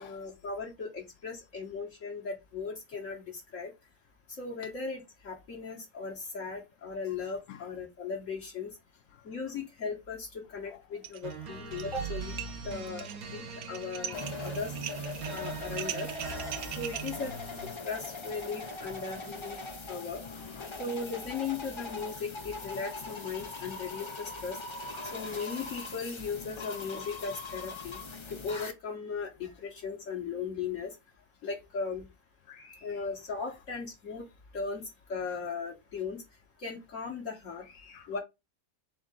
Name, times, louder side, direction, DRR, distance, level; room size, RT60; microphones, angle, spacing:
voice 1, 0.0-3.7 4.4-8.7 9.2-12.4 12.6-14.7 15.3-16.1 16.8-17.3 17.9-19.6 19.9-20.2 20.8-24.6 25.1-28.0 28.3-30.9 31.4-32.1 32.8-34.3 34.5-36.2 36.6-37.7 38.1-38.2, left 4 dB, 65° left, 1.4 m, -37 dB
sound 1, 11.0-11.3 11.6-12.1 12.4-17.1, right 11 dB, 65° right, 0.8 m, -40 dB
sound 2, 11.2-17.9, right 5 dB, 85° right, 1.5 m, -41 dB
voice 2, 14.0-14.6 15.3-15.5 16.2-16.4 20.2-20.7 24.9-25.3 26.6-26.9 29.4-29.5 32.5-33.0 37.6-38.2, left 8 dB, 80° left, 1.0 m, -51 dB
sound 3, 14.1-28.7, left 3 dB, 40° left, 0.4 m, -41 dB
3.8 x 3.7 x 3.6 m
omnidirectional pair, 1.5 m